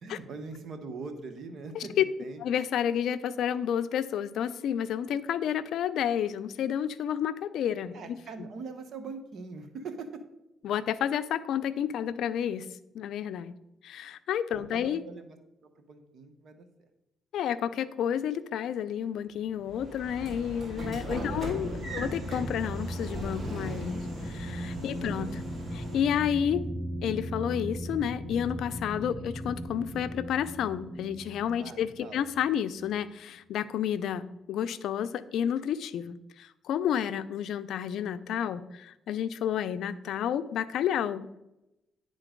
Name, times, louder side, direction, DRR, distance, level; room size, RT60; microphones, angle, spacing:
voice 1, 0.0-1.9 2.2-2.4 7.9-10.1 14.5-15.3 15.6-16.6 21.0-21.5 31.6-32.2, right 4 dB, 60° right, 7 dB, 1.1 m, -42 dB
voice 2, 2.4-8.2 10.6-12.7 12.9-13.5 13.8-15.0 17.3-25.3 25.7-26.6 27.0-34.2 34.5-41.4, left 9 dB, 75° left, 13 dB, 0.4 m, -30 dB
sound 1, 19.4-33.1, equal, 10° left, 1.9 m, -38 dB
Train / Sliding door, 19.7-26.2, right 1 dB, 40° right, 2.8 m, -39 dB
10.0 x 3.8 x 5.1 m, 0.91 s
cardioid pair, 90°, 0 cm